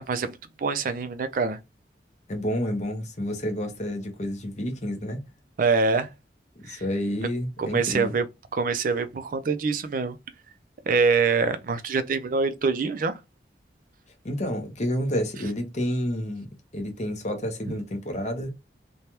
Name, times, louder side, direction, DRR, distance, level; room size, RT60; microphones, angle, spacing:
voice 1, 0.0-1.6 5.6-6.1 6.7-6.8 7.6-8.2 8.5-10.2 10.9-13.2, right 4 dB, 50° right, 0.4 m, -25 dB
voice 2, 2.3-5.2 6.6-8.1 14.2-18.5, equal, 40° left, 0.8 m, -29 dB
3.2 x 2.2 x 2.8 m
head